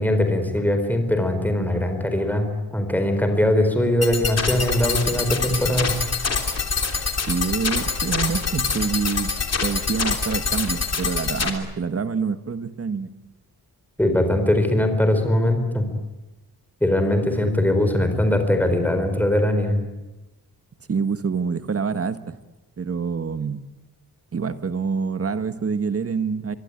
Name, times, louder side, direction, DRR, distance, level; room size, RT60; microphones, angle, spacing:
voice 1, 0.0-5.9 14.0-15.9 16.8-19.8, left 1 dB, 5° left, 6 dB, 4.5 m, -21 dB
sound 1, 4.0-11.5, left 4 dB, 40° left, 3.2 m, -25 dB
voice 2, 7.3-9.3 9.6-13.1 20.9-22.3 22.8-23.6 24.3-26.5, right 5 dB, 40° right, 11 dB, 1.4 m, -26 dB
24.5 x 24.0 x 9.9 m, 1.0 s
wide cardioid pair, 155°, 37 cm